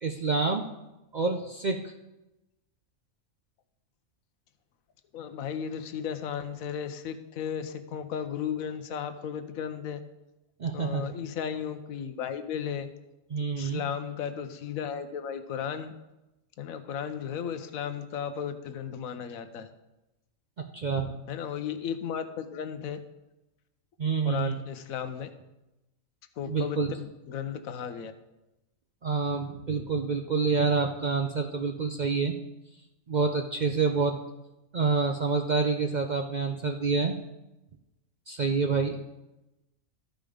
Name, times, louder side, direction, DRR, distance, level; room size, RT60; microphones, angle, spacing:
voice 1, 0.0-0.6 1.1-1.8 10.6-11.1 13.3-13.8 20.6-21.1 24.0-24.6 26.5-26.9 29.0-32.4 33.1-34.1 34.7-37.1 38.3-39.0, right 5 dB, 55° right, 4 dB, 0.5 m, -27 dB
voice 2, 5.1-10.0 10.7-12.9 13.5-15.9 16.6-19.7 21.3-23.0 24.2-25.3 26.4-28.1, left 8 dB, 90° left, 9 dB, 1.2 m, -35 dB
13.0 x 5.1 x 5.0 m, 0.99 s
omnidirectional pair, 1.4 m